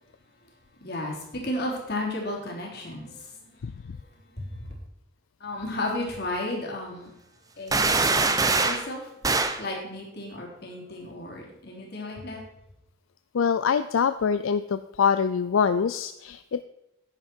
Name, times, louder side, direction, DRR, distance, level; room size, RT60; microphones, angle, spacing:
voice 1, 0.8-3.7 4.3-4.7 5.4-7.1 7.6-9.1 9.6-12.4, left 1 dB, 50° left, -1 dB, 3.3 m, -34 dB
sound 1, 7.7-8.9 9.2-9.6, right 3 dB, 15° right, 0.6 m, -23 dB
voice 2, 13.3-16.6, left 6 dB, 75° left, 12 dB, 0.4 m, -24 dB
10.5 x 10.0 x 4.5 m, 0.86 s
head